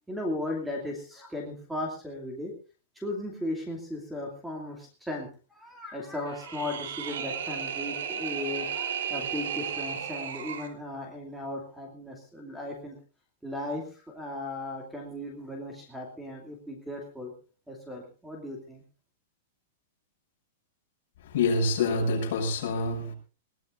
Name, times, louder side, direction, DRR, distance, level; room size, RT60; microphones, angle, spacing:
voice 1, 0.1-2.5 3.0-13.0 13.4-17.3 17.7-18.8, left 1 dB, 5° right, 2 dB, 2.5 m, -36 dB
sound 1, 6.3-10.7, right 7 dB, 90° right, 3.5 m, -34 dB
voice 2, 21.3-23.1, left 3 dB, 50° left, 0 dB, 6.6 m, -26 dB
21.0 x 18.0 x 2.6 m, 0.36 s
supercardioid pair, 175°, 0 cm